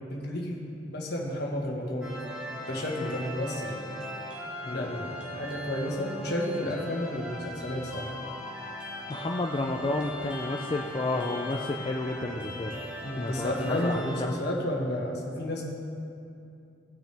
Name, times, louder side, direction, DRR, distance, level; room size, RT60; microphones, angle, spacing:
voice 1, 0.1-2.2 2.7-3.8 4.7-8.1 13.0-15.6, left 1 dB, 55° left, -1 dB, 1.6 m, -32 dB
sound 1, 2.0-14.2, equal, 5° right, 1.2 m, -39 dB
voice 2, 9.1-12.8 13.2-14.3, left 2 dB, 25° left, 1 dB, 0.4 m, -31 dB
18.5 x 6.1 x 3.4 m, 2.6 s
head